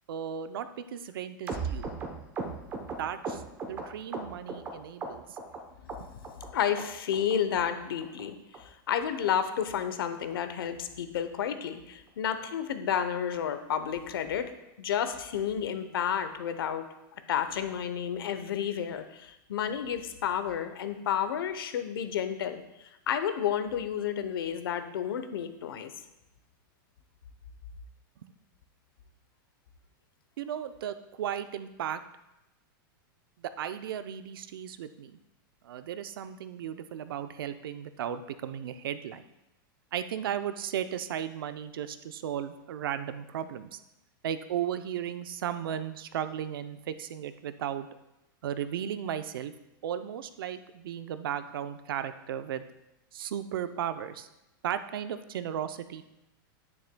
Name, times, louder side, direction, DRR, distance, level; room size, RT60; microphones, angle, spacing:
voice 1, 0.1-1.9 3.0-5.4 28.2-28.3 30.4-32.0 33.4-35.2 35.6-39.2 39.9-43.8 44.2-47.9 48.4-49.5 49.8-52.6 53.1-54.3 54.6-56.0, right 9 dB, 80° right, 10 dB, 0.6 m, -35 dB
sound 1, 1.5-4.7 5.0-5.6 5.9-6.5 6.8-6.9 7.1-7.4 7.7-7.8 8.0-8.2 8.5-8.6 8.9-9.1 9.4-9.5 9.8-10.0 10.3-10.4 10.7-10.9 11.2-11.3, right 4 dB, 20° right, 0.8 m, -37 dB
voice 2, 6.5-16.9 17.3-25.9, left 9 dB, 90° left, 10 dB, 0.8 m, -31 dB
9.7 x 9.5 x 2.2 m, 0.92 s
supercardioid pair, 165°, 12 cm